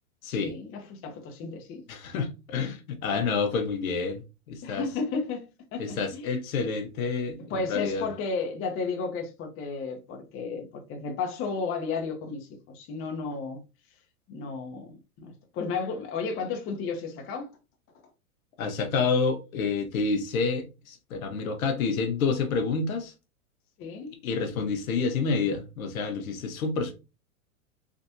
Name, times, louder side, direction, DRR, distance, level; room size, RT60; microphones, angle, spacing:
voice 1, 0.3-1.8 4.6-5.5 5.7-6.3 7.5-13.6 14.3-17.5 23.8-24.1, left 4 dB, 30° left, 0.8 m, -33 dB
voice 2, 1.9-4.2 4.5-4.8 5.8-8.1 18.6-23.1 24.2-26.9, left 4 dB, 70° left, 0.9 m, -28 dB
3.5 x 2.5 x 2.7 m
hypercardioid pair, 105°, 44 cm